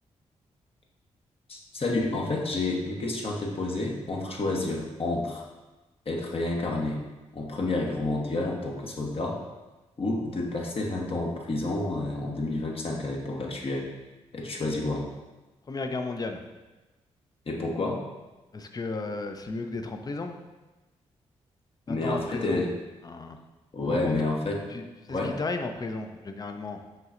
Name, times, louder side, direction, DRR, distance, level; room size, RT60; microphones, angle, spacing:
voice 1, 1.5-5.5 6.1-7.0 7.3-9.4 10.0-13.9 14.3-15.0 17.5-18.0 21.9-22.7 23.7-24.7 25.1-25.4, left 2 dB, 50° left, -1 dB, 0.9 m, -29 dB
voice 2, 15.7-16.4 18.5-20.3 21.9-22.7 23.0-23.4 23.9-24.2 24.7-26.8, left 3 dB, 30° left, 6 dB, 0.5 m, -34 dB
5.6 x 3.1 x 2.5 m, 1.1 s
supercardioid pair, 50°, 13 cm